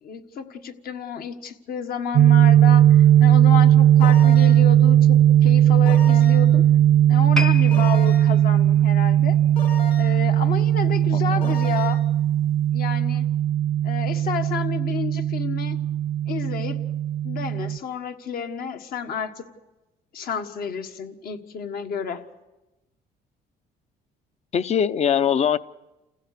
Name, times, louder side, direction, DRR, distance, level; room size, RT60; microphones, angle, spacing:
voice 1, 0.0-6.6 7.1-9.4 10.0-12.0 12.7-13.2 13.8-15.8 16.3-16.8 17.2-19.4 20.1-22.2, left 7 dB, 60° left, 1.6 m, -31 dB
sound 1, 2.1-17.8, right 11 dB, 65° right, 0.6 m, -17 dB
sound 2, 4.0-4.7 5.8-6.6 7.7-8.4 9.6-10.3 11.4-12.0, left 4 dB, 75° left, 3.6 m, -36 dB
sound 3, 7.3-10.6 10.9-11.2 11.9-12.0, left 3 dB, 5° left, 0.7 m, -34 dB
voice 2, 11.1-11.6 24.5-25.6, left 8 dB, 40° left, 0.7 m, -22 dB
29.0 x 15.5 x 6.7 m
cardioid pair, 110°, 17 cm